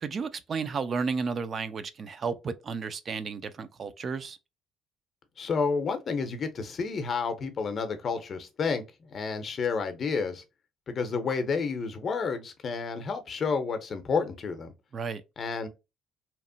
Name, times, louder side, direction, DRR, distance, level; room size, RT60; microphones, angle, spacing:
voice 1, 0.0-4.4 14.9-15.2, right 5 dB, 40° right, 0.3 m, -33 dB
voice 2, 5.4-8.8 9.1-10.4 10.9-14.7 15.4-15.7, left 5 dB, 45° left, 0.6 m, -30 dB
2.8 x 2.0 x 2.6 m
cardioid pair, 105°, 0 cm